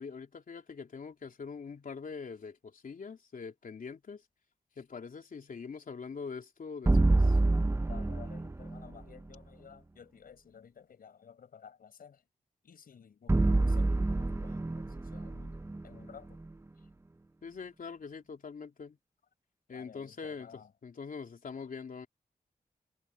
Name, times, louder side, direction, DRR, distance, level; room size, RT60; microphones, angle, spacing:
voice 1, 0.0-4.2 4.8-7.4 17.4-19.0 19.7-22.1, left 5 dB, 70° left, 3.3 m, -43 dB
sound 1, 6.9-9.0 13.3-16.5, right 2 dB, 20° right, 0.6 m, -27 dB
voice 2, 7.9-12.2 12.6-16.4 16.8-16.9 19.7-20.7, left 7 dB, 90° left, 6.4 m, -54 dB
cardioid pair, 65°, 15 cm